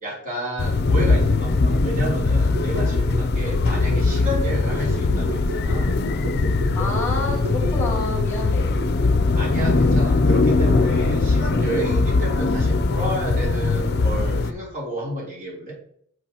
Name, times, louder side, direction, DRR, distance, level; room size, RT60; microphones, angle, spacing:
voice 1, 0.0-6.0 9.3-15.7, right 1 dB, 40° right, -3 dB, 3.4 m, -31 dB
sound 1, 0.6-14.5, left 3 dB, 50° left, 0.5 m, -20 dB
sound 2, 2.4-9.2 9.5-9.6, equal, 60° right, 1.2 m, -33 dB
voice 2, 6.7-8.8, left 2 dB, 15° left, -3 dB, 2.7 m, -28 dB
9.5 x 6.3 x 2.9 m, 0.65 s
head